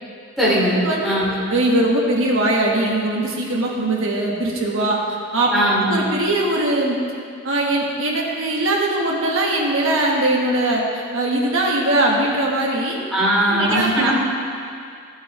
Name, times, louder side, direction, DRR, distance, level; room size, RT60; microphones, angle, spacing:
voice 1, 0.4-0.8 1.0-1.3 5.5-6.0 13.1-14.1, right 1 dB, ahead, -9 dB, 2.6 m, -19 dB
voice 2, 1.5-5.0 5.3-5.5 5.8-7.0 7.4-13.0 13.5-14.1, right 1 dB, 60° right, -2 dB, 1.6 m, -20 dB
13.5 x 8.0 x 3.2 m, 2.3 s
head